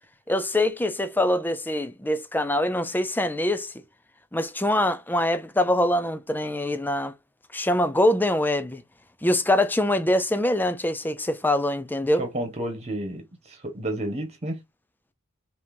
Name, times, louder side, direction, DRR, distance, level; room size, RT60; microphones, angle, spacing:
voice 1, 0.3-3.7 4.3-7.1 7.5-8.8 9.2-12.2, left 1 dB, 10° left, 0.5 m, -24 dB
voice 2, 12.2-14.6, right 1 dB, 30° right, 1.4 m, -31 dB
5.4 x 3.0 x 2.7 m
head